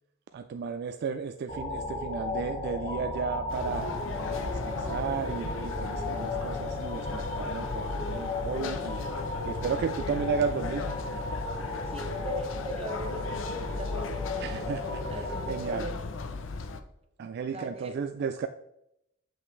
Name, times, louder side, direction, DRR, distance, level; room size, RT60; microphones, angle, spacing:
voice 1, 0.3-4.0 4.3-9.1 9.5-11.0 14.4-15.9 17.2-18.5, right 6 dB, 55° right, 0.3 m, -34 dB
sound 1, 1.5-15.5, left 2 dB, 35° left, 1.3 m, -35 dB
sound 2, 3.5-16.8, left 3 dB, 75° left, 0.6 m, -37 dB
voice 2, 11.9-14.7 15.1-16.0 17.5-17.9, right 1 dB, 30° right, 0.8 m, -40 dB
7.0 x 5.7 x 3.2 m
head